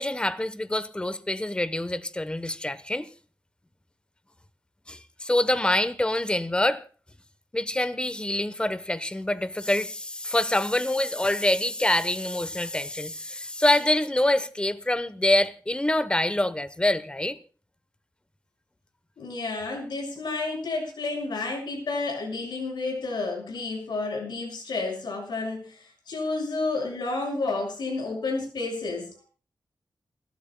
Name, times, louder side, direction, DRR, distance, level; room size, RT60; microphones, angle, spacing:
voice 1, 0.0-3.1 4.9-6.8 7.5-17.4, left 1 dB, 15° left, 0.9 m, -25 dB
voice 2, 19.2-29.1, left 3 dB, 85° left, 6.2 m, -31 dB
29.0 x 12.5 x 2.2 m
wide cardioid pair, 85°, 7 cm